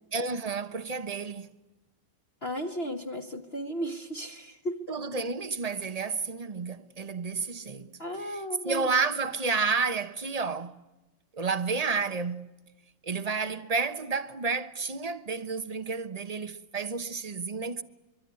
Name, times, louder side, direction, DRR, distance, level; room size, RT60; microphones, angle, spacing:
voice 1, 0.1-1.5 4.9-10.8 11.3-12.5 13.0-17.8, right 4 dB, 30° right, 0.7 m, -31 dB
voice 2, 2.4-5.0 8.0-8.9, equal, 35° left, 1.4 m, -35 dB
25.0 x 24.0 x 9.7 m
omnidirectional pair, 2.1 m